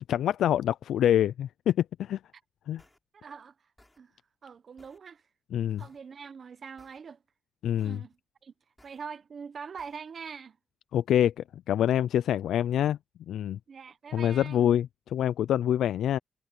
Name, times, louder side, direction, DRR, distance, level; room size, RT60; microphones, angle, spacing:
voice 1, 0.0-2.2 2.7-2.8 5.5-5.8 7.6-8.0 10.9-13.0 13.3-13.6 14.1-16.2, left 10 dB, 85° left, 0.3 m, -26 dB
sound 1, 2.8-3.0 3.8-4.0 4.8-5.0 5.8-6.0 6.8-7.0 7.8-8.0 8.8-9.0 9.8-10.0, left 1 dB, 10° left, 5.5 m, -60 dB
voice 2, 3.1-3.5 4.0-5.2 5.8-7.2 7.8-8.5 8.8-10.6 13.7-14.7, right 6 dB, 50° right, 0.8 m, -43 dB
cardioid pair, 100°, 0 cm